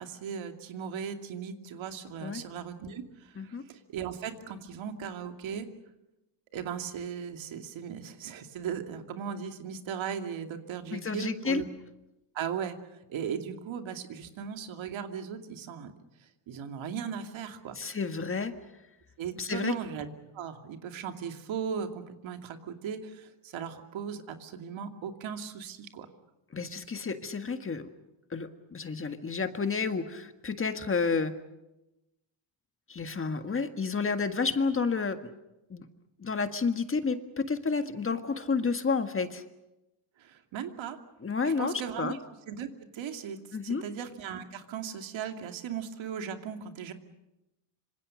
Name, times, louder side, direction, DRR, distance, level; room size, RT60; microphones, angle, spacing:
voice 1, 0.0-5.7 6.5-11.6 12.3-12.8 13.1-15.9 16.2-17.8 19.2-26.1 40.2-41.0 41.4-42.2 42.5-42.7 42.9-46.9, right 7 dB, 80° right, 5 dB, 2.7 m, -37 dB
voice 2, 10.9-11.6 17.8-18.5 19.4-19.7 26.5-27.9 28.3-31.3 32.9-35.2 35.7-35.9 36.2-39.4 41.2-42.2 43.5-43.9, left 4 dB, 25° left, 8 dB, 1.7 m, -30 dB
26.0 x 26.0 x 6.5 m, 0.96 s
cardioid pair, 125°, 46 cm